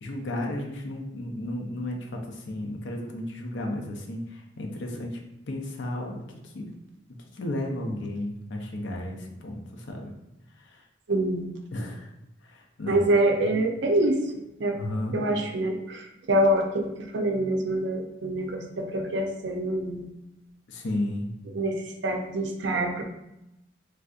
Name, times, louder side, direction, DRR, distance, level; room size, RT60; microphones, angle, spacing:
voice 1, 0.0-5.2 5.5-6.7 7.3-10.1 10.6-10.8 11.7-12.1 12.4-13.5 14.7-15.2 20.7-21.3, left 1 dB, 75° left, 1 dB, 0.5 m, -33 dB
voice 2, 11.1-11.5 12.9-14.2 14.6-14.8 15.1-20.1 21.5-21.7 22.0-23.0, right 1 dB, 75° right, 3 dB, 0.5 m, -25 dB
3.4 x 2.6 x 2.4 m, 0.88 s
head